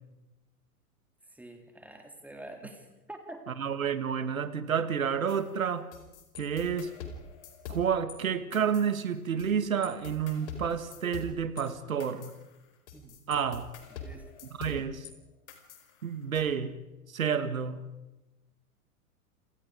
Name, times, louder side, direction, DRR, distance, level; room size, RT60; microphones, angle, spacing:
voice 1, 1.3-3.6 12.9-13.2 14.0-14.3, right 1 dB, 5° right, 4 dB, 3.7 m, -46 dB
voice 2, 3.5-5.9 6.4-6.9 7.7-12.3 13.3-13.7 14.6-15.1 16.0-16.7 17.1-17.8, right 7 dB, 65° right, 12 dB, 2.2 m, -30 dB
sound 1, 5.3-8.2 8.5-9.5 9.8-15.1 15.5-16.4, left 4 dB, 50° left, 4.7 m, -45 dB
30.0 x 27.0 x 5.2 m, 1.0 s
figure-of-eight pair, 105°, 45 cm